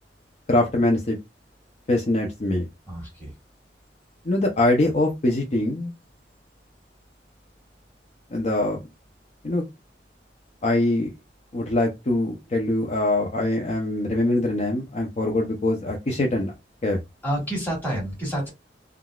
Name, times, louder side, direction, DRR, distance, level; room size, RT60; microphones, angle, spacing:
voice 1, 0.5-1.2 1.9-2.7 4.2-5.9 8.3-8.8 9.4-9.6 10.6-11.1 11.5-16.5 16.8-17.0, left 2 dB, 40° left, 0 dB, 0.5 m, -23 dB
voice 2, 2.9-3.3 17.2-18.5, right 1 dB, 10° left, -2 dB, 1.7 m, -28 dB
3.6 x 2.3 x 2.3 m, 0.21 s
head